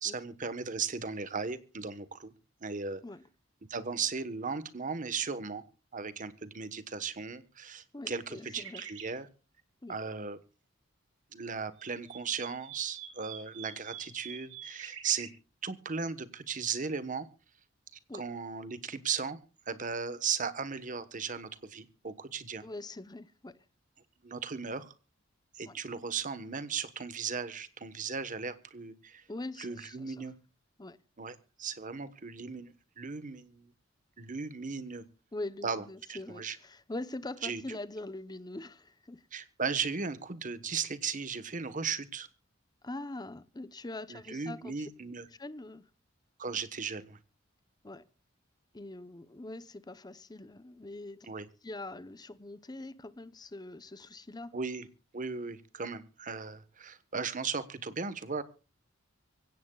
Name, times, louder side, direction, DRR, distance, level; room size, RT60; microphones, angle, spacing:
voice 1, 0.0-2.3 2.6-3.0 3.7-5.6 5.9-9.3 9.9-10.4 11.3-15.3 15.6-17.3 18.1-19.4 19.7-22.6 24.2-24.9 25.5-29.3 29.6-30.3 31.2-33.7 34.2-35.0 35.6-36.6 37.4-37.6 39.3-42.3 44.1-45.2 46.4-47.2 51.3-51.5 54.5-54.9 55.1-58.4, right 5 dB, 40° right, 1.2 m, -36 dB
voice 2, 7.9-8.8 9.8-10.0 18.1-18.2 22.6-23.6 25.7-25.8 29.3-30.3 30.8-31.0 35.3-39.3 42.8-44.7 45.4-45.9 47.8-48.1 48.7-51.3 51.6-54.5, left 2 dB, 20° left, 0.8 m, -43 dB
sound 1, 8.3-9.1 11.5-15.3, right 8 dB, 80° right, 3.2 m, -46 dB
24.5 x 16.5 x 2.3 m
head